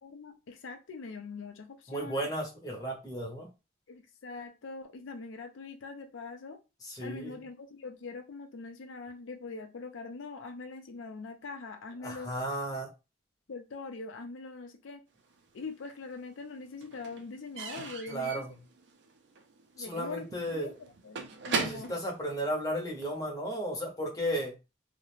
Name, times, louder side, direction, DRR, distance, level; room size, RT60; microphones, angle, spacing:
voice 1, 0.0-2.3 3.9-6.6 7.0-12.3 13.5-15.0 15.5-18.4 19.8-21.2 21.5-21.9, left 4 dB, 80° left, 5 dB, 0.4 m, -43 dB
voice 2, 1.9-3.5 6.8-7.4 12.0-12.9 18.1-18.5 19.8-20.8 21.6-24.5, equal, 20° left, 0 dB, 0.6 m, -34 dB
Slam / Squeak / Wood, 15.3-16.1 16.4-23.2, right 4 dB, 65° right, 0.4 m, -39 dB
2.4 x 2.0 x 3.0 m, 0.27 s
head